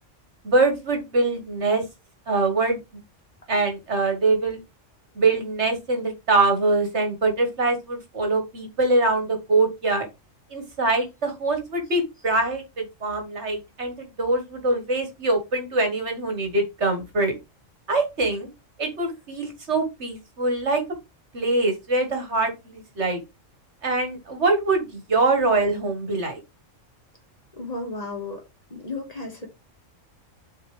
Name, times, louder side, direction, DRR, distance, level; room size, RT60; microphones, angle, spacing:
voice 1, 0.4-1.8 2.3-3.0 3.5-4.6 5.2-10.1 10.5-17.3 17.9-18.5 18.8-20.8 21.3-23.2 23.8-26.4, right 2 dB, 60° right, 2.0 m, -23 dB
voice 2, 27.6-28.4 28.7-29.5, left 2 dB, 30° left, 1.8 m, -33 dB
7.8 x 4.6 x 3.4 m
omnidirectional pair, 1.3 m